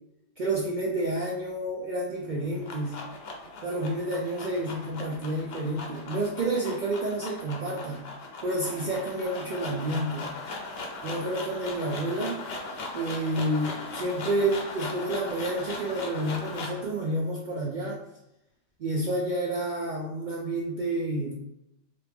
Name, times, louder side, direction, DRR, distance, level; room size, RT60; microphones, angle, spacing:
voice 1, 0.4-3.0 3.6-8.0 8.4-10.3 11.0-12.4 12.9-18.0 18.8-21.3, right 1 dB, 75° right, -3 dB, 0.4 m, -29 dB
sound 1, 2.2-16.9, left 3 dB, 60° left, 0.7 m, -39 dB
3.0 x 2.5 x 3.3 m, 0.87 s
omnidirectional pair, 1.3 m